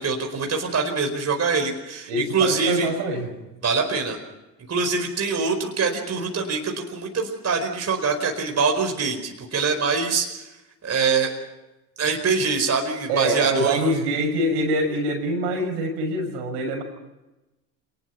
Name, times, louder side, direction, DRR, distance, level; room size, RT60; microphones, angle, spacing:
voice 1, 0.0-2.9 3.6-4.2 4.7-10.5 10.8-11.3 12.0-13.8, right 4 dB, 30° right, 3 dB, 4.7 m, -24 dB
voice 2, 2.1-3.4 13.1-16.8, right 1 dB, 70° right, 3 dB, 6.5 m, -24 dB
27.0 x 19.5 x 6.0 m, 1.0 s
hypercardioid pair, 70°, 48 cm